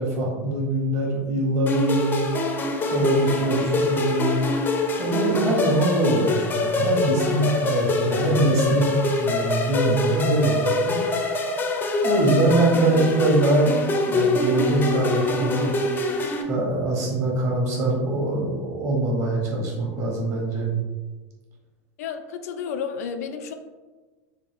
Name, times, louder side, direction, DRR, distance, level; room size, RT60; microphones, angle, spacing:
voice 1, 0.0-2.2 2.8-4.4 5.0-11.0 12.0-15.7 16.5-20.7, right 2 dB, 40° right, -1 dB, 1.3 m, -23 dB
sound 1, 1.7-16.4, left 3 dB, 25° left, 0.5 m, -25 dB
voice 2, 22.0-23.5, left 6 dB, 80° left, 8 dB, 0.4 m, -31 dB
3.5 x 2.4 x 3.5 m, 1.3 s
hypercardioid pair, 110°, 8 cm